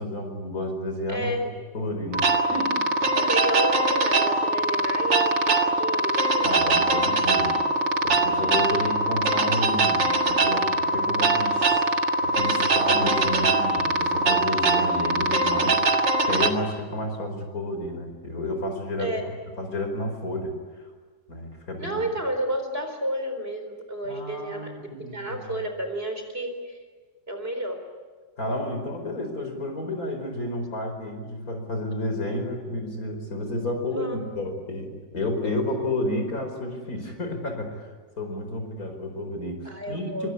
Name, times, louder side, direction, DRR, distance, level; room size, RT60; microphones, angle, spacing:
voice 1, 0.0-1.3 1.7-3.1 6.4-7.6 8.0-11.8 12.2-15.8 16.2-19.1 19.6-20.5 21.3-22.0 24.0-25.4 28.4-37.9 38.2-40.3, left 1 dB, 50° left, 5 dB, 5.3 m, -31 dB
voice 2, 1.1-1.4 3.2-6.5 19.0-19.2 21.8-26.8 27.3-27.8 33.9-34.2 39.6-40.3, right 1 dB, 30° right, 5 dB, 4.4 m, -31 dB
sound 1, 2.1-16.5, right 2 dB, 80° right, 2.5 m, -22 dB
25.5 x 23.5 x 9.8 m, 1.4 s
omnidirectional pair, 1.9 m